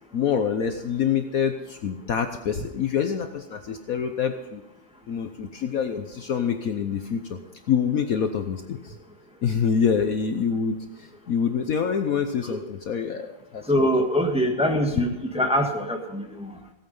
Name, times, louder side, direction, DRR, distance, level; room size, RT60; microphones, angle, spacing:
voice 1, 0.1-4.6 5.1-7.4 7.7-8.9 9.4-13.9, left 7 dB, 60° left, 7 dB, 1.1 m, -26 dB
voice 2, 13.7-15.1 15.3-16.5, equal, 5° right, 2 dB, 1.4 m, -23 dB
17.0 x 9.2 x 5.4 m, 0.99 s
omnidirectional pair, 1.9 m